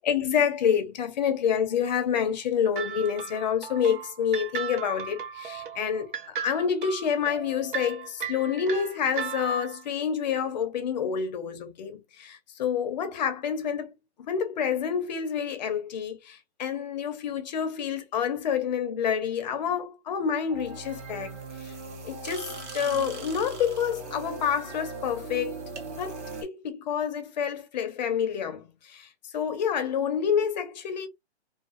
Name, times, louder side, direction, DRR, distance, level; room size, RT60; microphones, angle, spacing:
voice 1, 0.0-13.9 14.2-21.7 22.0-25.6 26.0-31.1, left 7 dB, 40° left, 0.6 m, -28 dB
sound 1, 2.8-9.8, right 8 dB, 50° right, 0.5 m, -36 dB
sound 2, 20.5-26.4, right 3 dB, 85° right, 1.0 m, -39 dB
2.4 x 2.2 x 2.4 m
hypercardioid pair, 150°, 34 cm